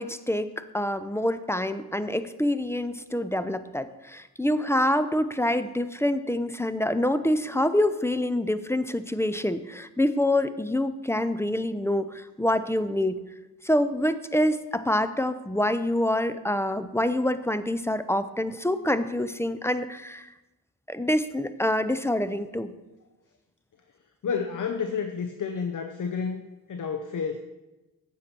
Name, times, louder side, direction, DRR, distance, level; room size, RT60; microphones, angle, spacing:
voice 1, 0.0-13.2 13.6-20.3 20.9-22.7, left 1 dB, 5° left, 12 dB, 0.5 m, -26 dB
voice 2, 24.2-26.4 26.7-27.4, left 6 dB, 50° left, 7 dB, 0.8 m, -30 dB
9.5 x 7.5 x 4.4 m, 1.0 s
cardioid pair, 55°, 39 cm